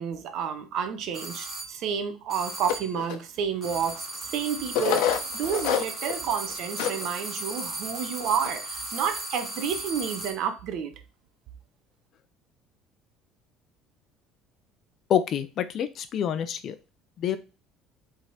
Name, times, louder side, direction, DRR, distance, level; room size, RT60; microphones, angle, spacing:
voice 1, 0.0-10.9, right 7 dB, 55° right, 1.1 m, -30 dB
sound 1, 1.1-1.8 2.3-3.0 3.6-10.5, right 2 dB, 20° right, 2.5 m, -36 dB
sound 2, 2.7-3.2 3.9-4.0 4.7-6.2 6.5-6.6 6.8-7.0 7.5-7.6 8.2-8.6, left 9 dB, 85° left, 1.0 m, -26 dB
voice 2, 15.1-16.7 17.2-17.4, left 9 dB, 45° left, 0.7 m, -27 dB
8.0 x 3.8 x 4.3 m
cardioid pair, 150°, 0 cm